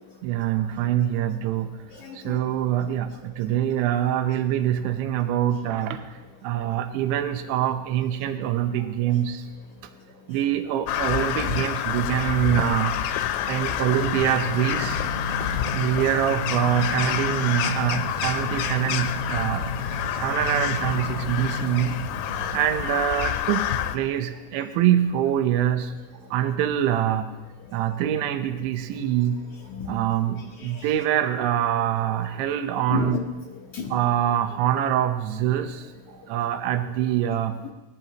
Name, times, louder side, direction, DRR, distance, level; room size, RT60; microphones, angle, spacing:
voice 1, 0.2-1.7 2.2-6.0 6.4-9.4 10.3-13.0 13.5-15.0 15.7-19.7 20.1-22.0 22.5-23.6 23.9-25.9 26.3-27.3 27.7-29.4 29.9-33.2 33.9-35.8 36.3-37.6, right 11 dB, 75° right, 7 dB, 3.1 m, -24 dB
voice 2, 1.9-2.4 3.3-3.4 12.1-12.3 13.1-13.7 15.3-15.4 15.7-15.9 16.7-16.8 21.0-21.1 22.1-22.6 27.6-27.8 29.6-30.1 30.4-31.0 32.2-32.6 32.9-34.1 35.5-35.7, left 6 dB, 70° left, -4 dB, 1.8 m, -36 dB
Crow, 10.9-24.0, left 10 dB, 90° left, 3.5 m, -28 dB
sound 1, 13.9-22.4, left 1 dB, 50° right, 2.2 m, -33 dB
21.0 x 19.5 x 3.0 m, 1.1 s
omnidirectional pair, 5.7 m